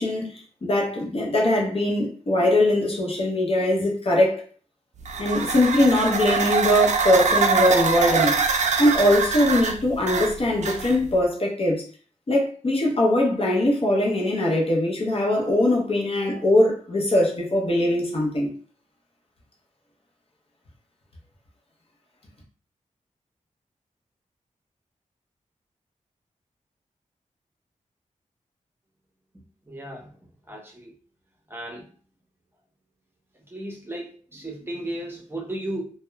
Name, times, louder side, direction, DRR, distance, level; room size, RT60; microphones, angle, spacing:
voice 1, 0.0-4.4 5.2-11.8 12.3-18.5, left 1 dB, 45° left, 0.7 m, -21 dB
sound 1, 5.0-11.2, right 5 dB, 60° right, 0.4 m, -24 dB
voice 2, 29.7-30.1 30.5-30.9 31.5-31.8 33.5-35.9, right 1 dB, 15° right, 0.7 m, -34 dB
2.8 x 2.1 x 2.2 m
wide cardioid pair, 100°, 13 cm